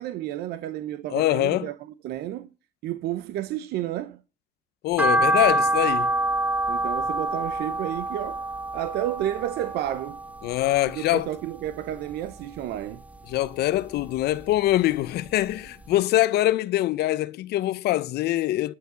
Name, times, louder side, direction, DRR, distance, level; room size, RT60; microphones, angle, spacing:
voice 1, 0.0-2.5 2.8-4.2 6.7-8.5 8.7-10.2 10.9-13.0, right 13 dB, 75° right, 0.7 m, -31 dB
voice 2, 1.1-1.7 4.8-6.1 10.4-11.3 13.3-18.7, left 15 dB, 70° left, 0.6 m, -24 dB
sound 1, 5.0-11.3 11.7-12.8 13.2-14.6 14.9-15.0 15.5-15.6 15.9-16.0, right 1 dB, 10° right, 0.7 m, -26 dB
10.5 x 6.7 x 6.8 m
cardioid pair, 110°, 17 cm